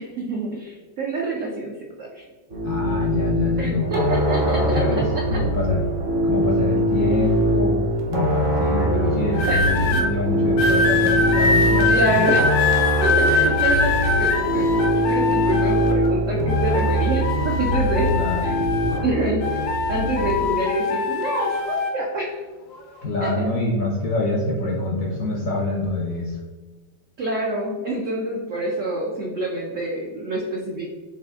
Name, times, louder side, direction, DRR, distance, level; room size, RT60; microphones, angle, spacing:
voice 1, 0.0-2.2 3.6-4.8 5.3-5.4 9.5-9.6 9.9-10.0 11.9-12.5 13.0-18.1 18.4-18.5 19.0-22.4 23.2-23.5 27.2-30.9, right 2 dB, 85° right, -2 dB, 0.6 m, -26 dB
sound 1, 2.5-20.6, right 1 dB, 50° right, 0.7 m, -22 dB
voice 2, 2.6-5.8 6.2-7.8 8.1-12.3 18.2-18.6 23.0-26.4, left 3 dB, 65° left, -2 dB, 0.8 m, -25 dB
sound 2, 9.3-10.0 10.6-16.1 16.5-19.1 19.4-21.9 22.7-23.0, left 4 dB, 80° left, 1.5 m, -23 dB
5.5 x 2.4 x 3.6 m, 1.3 s
omnidirectional pair, 2.1 m